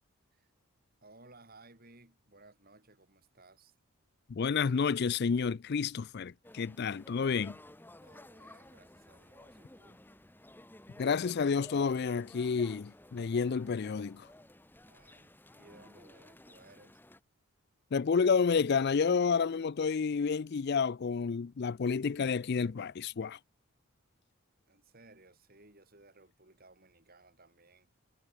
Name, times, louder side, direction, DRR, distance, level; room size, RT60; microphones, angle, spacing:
voice 1, 1.0-3.7 8.0-10.0 14.9-17.0 24.7-27.9, right 2 dB, 40° right, 6.6 m, -60 dB
voice 2, 4.3-7.5 11.0-14.3 17.9-23.4, left 5 dB, 50° left, 0.4 m, -30 dB
sound 1, 6.4-17.2, left 1 dB, 10° left, 1.2 m, -55 dB
head